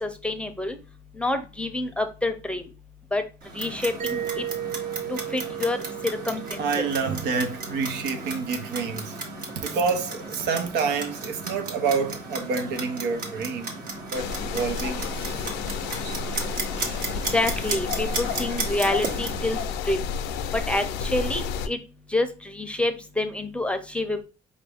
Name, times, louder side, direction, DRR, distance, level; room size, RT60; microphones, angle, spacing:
voice 1, 0.0-0.8 1.2-2.7 3.1-3.2 3.5-4.4 5.1-5.8 6.0-6.9 17.3-19.6 19.9-20.1 20.5-21.8 22.1-24.2, left 2 dB, 5° left, 0.6 m, -27 dB
Clock, 3.4-19.4, right 3 dB, 60° right, 1.4 m, -35 dB
Mallet percussion, 4.0-8.6, right 11 dB, 40° right, 0.7 m, -35 dB
voice 2, 6.6-9.3 9.5-13.8 14.1-15.4, right 5 dB, 85° right, 0.8 m, -28 dB
sound 1, 14.1-21.7, left 5 dB, 90° left, 0.5 m, -31 dB
5.0 x 2.6 x 3.4 m
cardioid pair, 110°, 17 cm